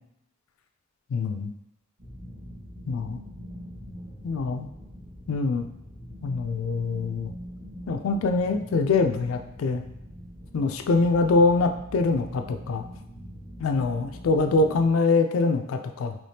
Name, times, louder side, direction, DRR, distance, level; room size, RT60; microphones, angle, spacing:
voice 1, 1.1-1.5 2.9-3.2 4.2-4.7 5.3-5.7 6.2-7.3 7.9-9.8 10.5-12.8 13.6-16.2, left 3 dB, 65° left, 6 dB, 0.3 m, -24 dB
sound 1, 2.0-14.9, equal, 25° right, 0.8 m, -43 dB
3.4 x 3.0 x 2.7 m, 0.83 s
head